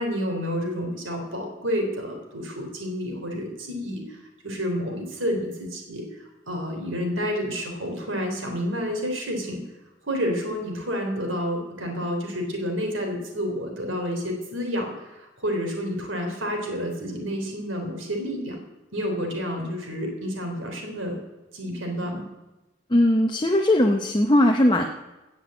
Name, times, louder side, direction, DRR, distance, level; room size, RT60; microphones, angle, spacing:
voice 1, 0.0-9.6 10.0-18.6 18.9-21.2 21.5-22.3, equal, 75° right, 2 dB, 3.3 m, -29 dB
voice 2, 22.9-24.9, left 1 dB, 20° left, 4 dB, 0.7 m, -19 dB
17.0 x 6.1 x 7.6 m, 1.1 s
head